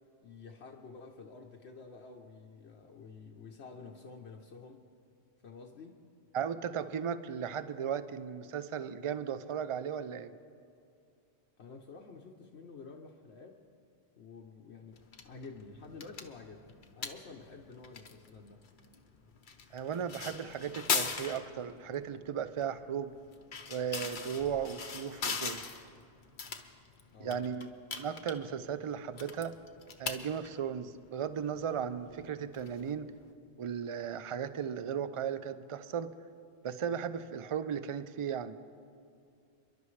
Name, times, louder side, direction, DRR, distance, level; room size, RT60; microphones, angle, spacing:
voice 1, 0.2-4.8 5.4-6.0 11.6-13.6 14.2-18.6 27.1-27.5, left 4 dB, 75° left, 1 dB, 1.1 m, -50 dB
voice 2, 6.3-10.3 19.7-23.1 23.7-25.6 27.2-27.7 28.0-29.5 30.0-33.1 33.6-36.1 36.6-38.6, right 8 dB, 45° right, 13 dB, 0.4 m, -36 dB
sound 1, 14.9-33.3, left 5 dB, 50° left, 0.9 m, -41 dB
29.0 x 11.5 x 3.2 m, 2.4 s
omnidirectional pair, 1.1 m